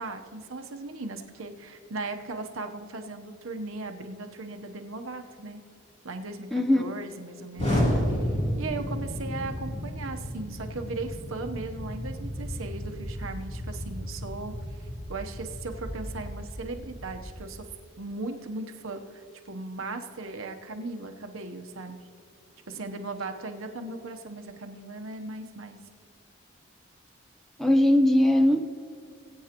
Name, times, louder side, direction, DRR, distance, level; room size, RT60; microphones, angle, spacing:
voice 1, 0.0-5.6 6.0-8.2 8.6-14.5 15.1-17.7 18.0-22.0 22.7-25.8, right 3 dB, 80° right, 5 dB, 0.9 m, -37 dB
voice 2, 6.5-6.8 27.6-28.6, left 1 dB, ahead, 6 dB, 0.5 m, -20 dB
Explosion, 7.6-17.5, equal, 35° left, 3.2 m, -32 dB
20.0 x 8.7 x 3.0 m, 2.5 s
head